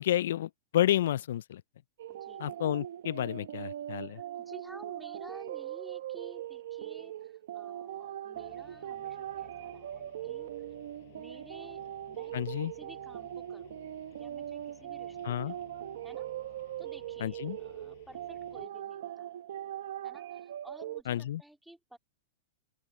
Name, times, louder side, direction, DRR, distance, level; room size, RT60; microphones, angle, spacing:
voice 1, 0.0-1.6 2.4-4.2 12.3-12.7 15.2-15.5 17.2-17.6 21.1-21.4, left 12 dB, 70° left, 0.4 m, -30 dB
sound 1, 2.0-21.0, right 12 dB, 70° right, 1.0 m, -41 dB
voice 2, 2.1-2.5 4.1-10.5 11.1-12.3 12.6-13.8 14.1-15.7 16.0-16.3 16.8-19.3 20.0-22.0, right 1 dB, ahead, 3.4 m, -53 dB
sound 2, 8.3-18.7, left 18 dB, 50° left, 5.6 m, -59 dB
open air
supercardioid pair, 160°, 0 cm